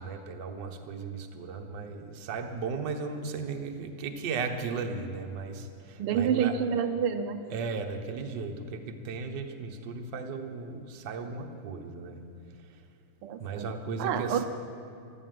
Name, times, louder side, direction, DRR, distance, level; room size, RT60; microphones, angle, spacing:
voice 1, 0.0-6.6 7.5-12.2 13.4-14.5, right 4 dB, 55° right, 5 dB, 1.6 m, -36 dB
voice 2, 6.0-7.4 13.2-13.7 14.0-14.5, right 8 dB, 90° right, 7 dB, 1.7 m, -28 dB
14.0 x 13.5 x 7.6 m, 2.5 s
omnidirectional pair, 2.4 m